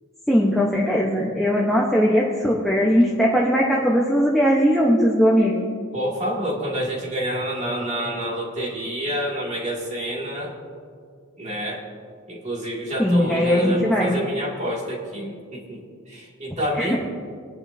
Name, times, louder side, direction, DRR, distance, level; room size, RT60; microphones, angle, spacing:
voice 1, 0.3-5.6 13.0-14.1 16.8-16.9, equal, ahead, -4 dB, 1.0 m, -19 dB
voice 2, 5.9-10.5 11.4-11.8 12.3-17.0, equal, 30° right, -3 dB, 2.4 m, -28 dB
22.5 x 10.5 x 2.8 m, 2.1 s
head